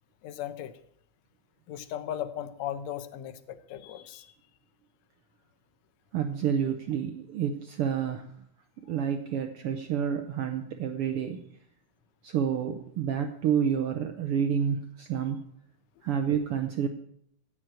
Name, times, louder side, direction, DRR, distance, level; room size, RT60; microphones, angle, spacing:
voice 1, 0.2-0.8 1.7-4.3 8.9-9.0, left 10 dB, 70° left, 10 dB, 1.9 m, -37 dB
voice 2, 6.1-8.3 8.9-11.4 12.2-15.4 16.0-16.9, right 8 dB, 75° right, 6 dB, 1.3 m, -29 dB
15.5 x 6.2 x 8.9 m, 0.70 s
omnidirectional pair, 3.5 m